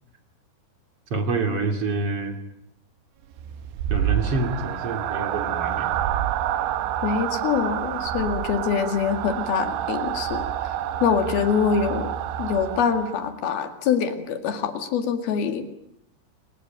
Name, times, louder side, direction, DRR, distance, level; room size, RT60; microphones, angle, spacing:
voice 1, 1.1-2.4 3.9-5.9, right 3 dB, 35° right, 5 dB, 2.7 m, -27 dB
sound 1, 3.3-13.3, right 11 dB, 75° right, 3.3 m, -28 dB
voice 2, 7.0-10.5 11.0-12.1 12.4-15.7, left 7 dB, 55° left, 7 dB, 3.5 m, -24 dB
28.5 x 22.0 x 8.9 m, 0.78 s
omnidirectional pair, 5.7 m